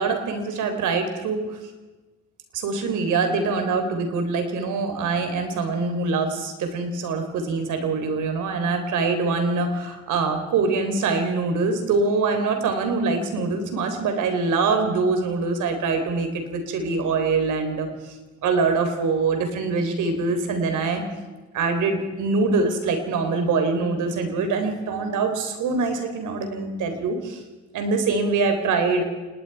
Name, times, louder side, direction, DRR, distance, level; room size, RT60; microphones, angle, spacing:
voice 1, 0.0-1.4 2.5-17.9 18.4-21.0 21.5-27.4 27.7-29.0, right 4 dB, 80° right, 6 dB, 3.9 m, -24 dB
28.5 x 19.5 x 4.8 m, 1.2 s
cardioid pair, 90°, 30 cm